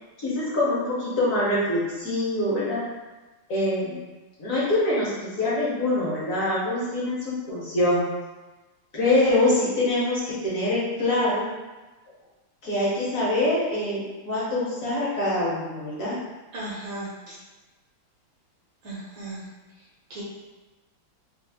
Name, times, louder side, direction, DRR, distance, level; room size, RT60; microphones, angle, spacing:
voice 1, 0.2-2.8 3.5-4.0 4.4-8.0 8.9-11.5 12.6-16.2, left 1 dB, 60° left, -8 dB, 0.9 m, -24 dB
voice 2, 16.5-17.4 18.8-19.4 20.1-20.2, right 2 dB, 70° right, -6 dB, 1.1 m, -36 dB
3.4 x 2.0 x 3.3 m, 1.2 s
omnidirectional pair, 2.3 m